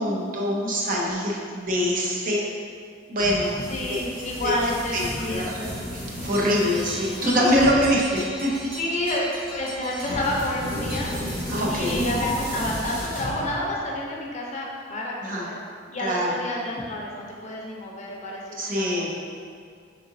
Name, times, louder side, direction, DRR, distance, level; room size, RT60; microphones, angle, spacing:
voice 1, 0.0-2.4 3.1-3.6 3.9-4.0 4.4-4.5 4.9-5.6 6.2-8.5 11.5-12.0 15.2-15.5 16.0-16.3 18.6-19.1, equal, 45° right, -3 dB, 0.6 m, -24 dB
sound 1, 3.2-13.8, equal, 30° right, 1.4 m, -33 dB
voice 2, 3.7-5.8 8.8-11.1 11.7-15.6 15.9-19.1, left 1 dB, 40° left, -3 dB, 0.6 m, -30 dB
sound 2, 5.5-5.9 6.2-10.4 10.8-12.7, right 1 dB, 80° right, 1.2 m, -40 dB
4.0 x 3.6 x 2.6 m, 2.2 s
head